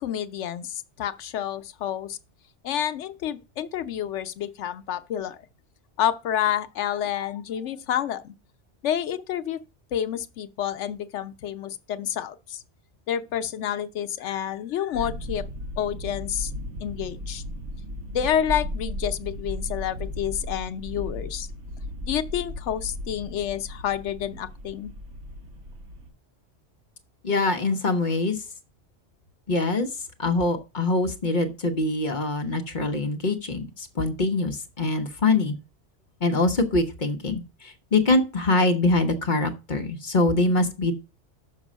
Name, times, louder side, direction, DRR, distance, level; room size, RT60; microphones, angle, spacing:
voice 1, 0.0-2.2 2.6-5.4 6.0-8.3 8.8-9.6 9.9-12.6 13.1-15.4 15.8-16.5 16.8-17.4 18.1-21.5 22.1-24.9, left 10 dB, 85° left, 1.0 m, -29 dB
sound 1, 14.9-26.1, left 1 dB, 85° right, 1.5 m, -36 dB
voice 2, 27.2-28.4 29.5-29.9 30.2-35.5 36.2-40.9, left 2 dB, 45° left, 1.0 m, -24 dB
6.5 x 5.3 x 6.1 m
omnidirectional pair, 1.2 m